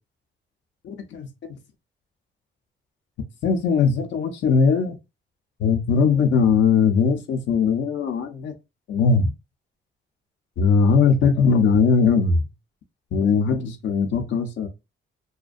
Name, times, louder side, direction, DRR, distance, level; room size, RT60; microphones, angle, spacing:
voice 1, 0.8-1.3 3.4-5.0 5.6-8.5 8.9-9.3 10.6-12.4 13.1-14.7, left 5 dB, 65° left, 0.5 m, -20 dB
2.3 x 2.1 x 2.5 m
cardioid pair, 90°, 20 cm